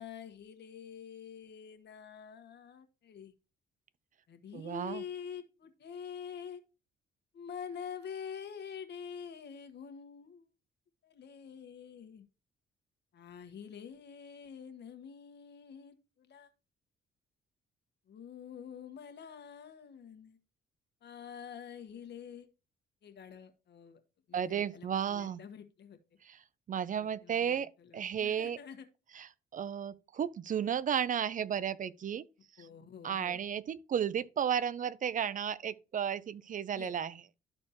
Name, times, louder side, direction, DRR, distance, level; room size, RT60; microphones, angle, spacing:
voice 1, 0.0-3.3 4.3-6.6 7.3-10.5 11.0-12.2 13.1-16.5 18.1-20.4 21.0-22.5 23.0-24.0 24.3-26.0 26.9-28.9 32.6-33.4 36.7-36.9, left 7 dB, 60° left, 1.4 m, -47 dB
voice 2, 4.5-5.0 24.3-25.4 26.2-26.4 26.7-28.6 29.1-32.2 32.6-32.7 33.0-37.2, right 8 dB, 40° right, 0.5 m, -34 dB
12.5 x 4.3 x 2.9 m
cardioid pair, 90°, 20 cm